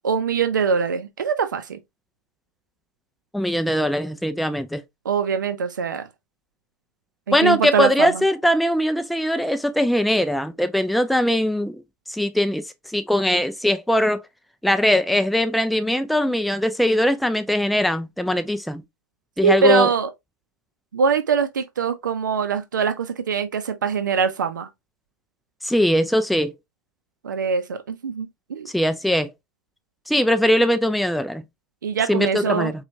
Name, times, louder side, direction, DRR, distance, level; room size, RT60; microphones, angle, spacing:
voice 1, 0.0-1.8 5.0-6.1 7.3-8.2 19.4-20.1 20.9-24.7 27.2-28.7 31.8-32.7, right 6 dB, 80° right, 0.5 m, -23 dB
voice 2, 3.3-4.8 7.3-11.8 12.1-12.6 12.9-14.2 14.6-18.8 19.4-19.9 25.6-26.5 28.7-29.3 30.1-31.4 32.1-32.7, left 1 dB, ahead, 0.4 m, -21 dB
4.3 x 2.3 x 2.6 m
hypercardioid pair, 100°, 10 cm